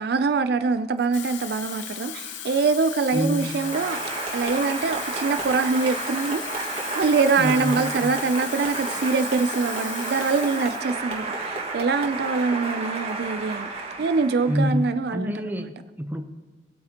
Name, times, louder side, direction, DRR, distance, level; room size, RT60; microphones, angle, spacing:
voice 1, 0.0-4.0 4.3-13.7 14.0-15.7, right 4 dB, 60° right, 11 dB, 0.4 m, -24 dB
Water tap faucet / Fill (with liquid), 1.0-10.9 11.3-11.5, left 10 dB, 85° left, 0.7 m, -37 dB
voice 2, 3.1-3.6 7.4-8.1 14.5-16.3, equal, 10° right, 5 dB, 0.7 m, -27 dB
Applause, 3.3-14.8, right 3 dB, 35° right, 1.8 m, -32 dB
19.5 x 8.4 x 2.9 m, 1.3 s
head